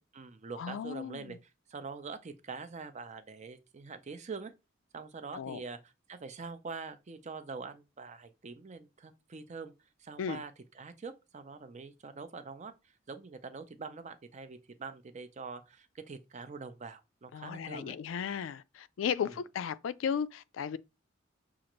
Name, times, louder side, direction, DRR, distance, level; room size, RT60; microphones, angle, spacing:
voice 1, 0.0-4.5 4.9-9.7 10.0-12.7 13.1-17.9 19.2-19.4, right 4 dB, 35° right, 0.5 m, -44 dB
voice 2, 0.6-1.4 5.3-5.6 10.2-10.4 17.3-20.8, left 7 dB, 80° left, 0.3 m, -35 dB
6.2 x 2.4 x 3.0 m
head